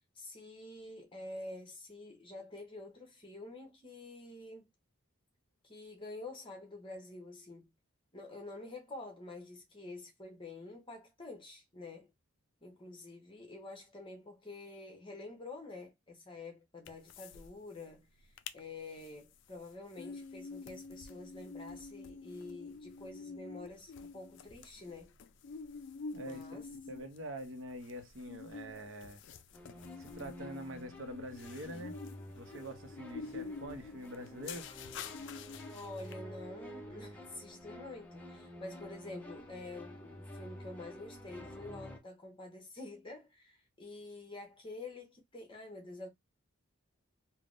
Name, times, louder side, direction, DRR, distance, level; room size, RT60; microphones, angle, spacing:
voice 1, 0.1-4.7 5.6-7.7 8.1-12.1 12.6-25.1 26.2-26.7 33.3-33.6 35.7-46.1, left 2 dB, 25° left, 1.0 m, -48 dB
sound 1, 16.8-17.5 17.7-17.8 18.2-18.6 19.0-36.1, left 4 dB, 55° left, 0.3 m, -47 dB
voice 2, 26.1-29.2 30.0-32.0 32.3-34.7, right 1 dB, 65° right, 0.7 m, -45 dB
sound 2, 29.5-42.0, equal, 10° left, 0.6 m, -50 dB
3.4 x 2.1 x 2.5 m
head